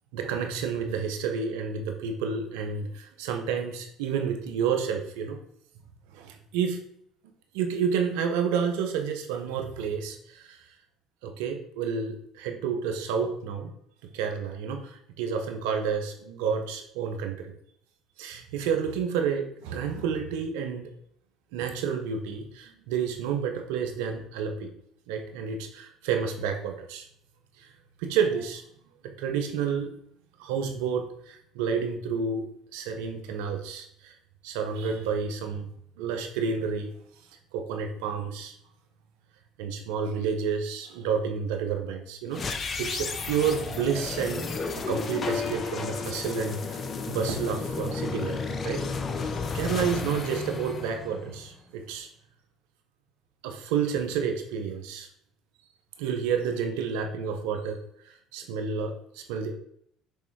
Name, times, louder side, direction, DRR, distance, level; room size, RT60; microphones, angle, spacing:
voice 1, 0.1-5.4 6.1-6.8 7.5-10.6 11.2-13.7 14.1-17.5 18.2-20.9 21.5-24.7 25.1-27.0 27.6-27.7 28.0-28.6 29.2-29.9 30.4-34.1 34.4-35.7 36.0-36.9 37.5-38.5 39.6-44.5 44.9-46.8 47.1-48.8 49.5-52.1 53.4-55.1 56.0-57.8 58.0-59.5, right 6 dB, 80° right, 5 dB, 1.0 m, -30 dB
sound 1, 42.3-51.5, left 4 dB, 40° left, 0.9 m, -32 dB
6.7 x 3.4 x 4.8 m, 0.69 s
hypercardioid pair, 75°, 0 cm